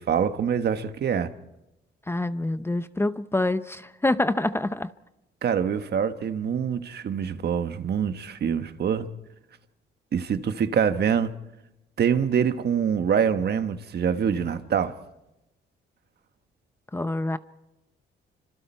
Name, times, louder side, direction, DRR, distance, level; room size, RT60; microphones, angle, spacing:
voice 1, 0.0-1.3 5.4-9.1 10.1-11.3 12.0-15.0, right 7 dB, 55° right, 1.3 m, -25 dB
voice 2, 2.1-4.9 16.9-17.4, left 2 dB, 10° left, 0.7 m, -26 dB
28.0 x 25.5 x 4.5 m
cardioid pair, 90°, 20 cm